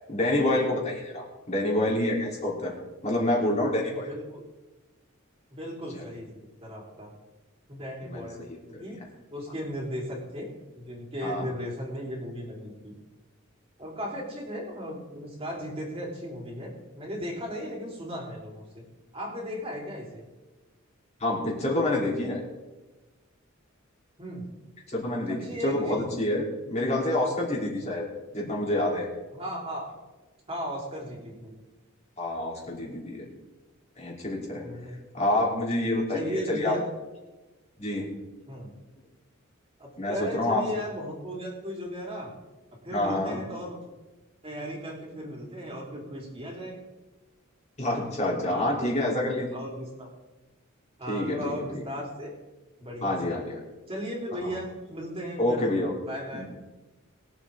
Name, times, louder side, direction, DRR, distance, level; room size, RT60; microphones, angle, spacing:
voice 1, 0.1-2.7 3.0-4.1 5.9-6.0 8.0-8.8 11.2-11.5 21.2-22.4 24.9-28.1 28.3-29.1 32.2-33.2 34.0-34.7 35.1-36.7 37.8-38.1 40.0-40.6 42.9-43.4 47.8-49.6 51.1-51.8 53.0-53.6 54.4-54.6 55.4-55.9 56.3-56.4, left 1 dB, 35° left, -2 dB, 3.3 m, -27 dB
voice 2, 4.1-4.4 5.5-6.3 6.6-7.1 7.7-8.5 8.8-9.0 9.3-10.5 10.8-12.9 13.8-18.8 19.1-20.2 24.2-24.4 25.3-26.0 29.3-29.9 30.5-31.5 34.6-35.0 36.1-36.8 38.5-38.7 39.8-42.3 42.8-43.8 44.4-46.8 48.5-48.7 49.5-50.1 51.0-52.3 52.8-53.4 53.9-55.6 56.1-56.4, equal, 30° right, -2 dB, 3.6 m, -36 dB
22.0 x 8.0 x 3.7 m, 1.2 s
head